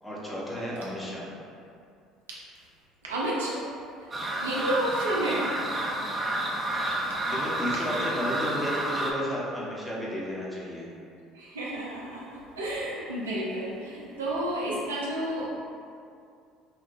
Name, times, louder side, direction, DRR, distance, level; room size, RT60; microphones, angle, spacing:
voice 1, 0.0-1.3 6.7-10.9, equal, 5° left, -6 dB, 0.7 m, -33 dB
voice 2, 3.0-3.6 4.4-5.5 6.4-6.5 7.9-8.0 11.3-15.5, right 1 dB, 85° right, -6 dB, 0.4 m, -31 dB
sound 1, 4.1-9.1, right 1 dB, 25° right, 0.4 m, -30 dB
2.9 x 2.0 x 2.6 m, 2.4 s
hypercardioid pair, 60°, 0 cm